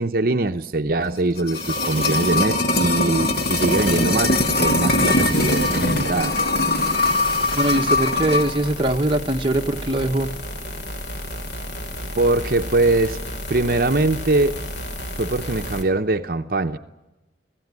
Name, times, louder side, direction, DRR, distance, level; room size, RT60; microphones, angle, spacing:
voice 1, 0.0-6.3 12.2-13.2 13.5-14.6 15.1-16.8, right 2 dB, 50° right, 0.8 m, -22 dB
sound 1, 1.1-8.6 8.9-9.0, left 2 dB, 60° left, 2.3 m, -21 dB
sound 2, 1.5-2.6 3.2-4.3 4.9-6.1 6.7-8.0, left 2 dB, 30° left, 3.5 m, -36 dB
sound 3, 4.2-15.8, equal, 80° left, 4.5 m, -33 dB
voice 2, 7.5-10.3, right 1 dB, 30° right, 1.1 m, -22 dB
27.0 x 16.5 x 9.6 m
head